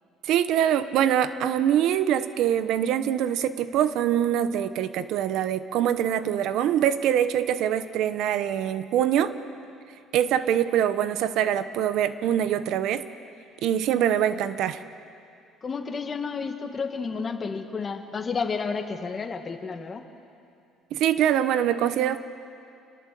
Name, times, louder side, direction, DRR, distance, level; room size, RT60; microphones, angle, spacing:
voice 1, 0.2-9.3 10.1-13.0 13.6-14.8 20.9-22.2, right 10 dB, 65° right, 12 dB, 1.0 m, -24 dB
voice 2, 15.6-20.0, left 5 dB, 30° left, 6 dB, 1.8 m, -31 dB
28.5 x 20.0 x 7.7 m, 2.5 s
cardioid pair, 130°, 0 cm